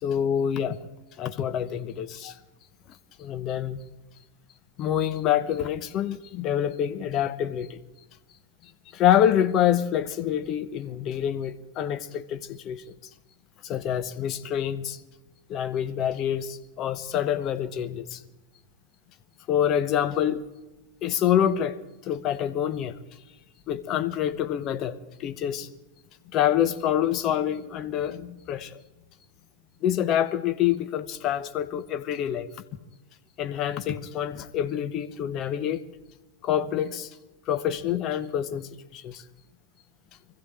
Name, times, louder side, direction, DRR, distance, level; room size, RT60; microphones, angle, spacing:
voice 1, 0.0-0.8 1.2-2.4 3.2-3.8 4.8-7.8 8.9-12.8 13.6-15.0 15.5-18.2 19.5-20.4 21.0-21.8 22.0-23.0 23.7-25.7 26.3-28.8 29.8-32.5 33.4-35.8 36.4-37.1 37.5-39.2, left 10 dB, 35° left, 1.0 m, -26 dB
24.5 x 15.0 x 3.4 m
figure-of-eight pair, 90°, 0 cm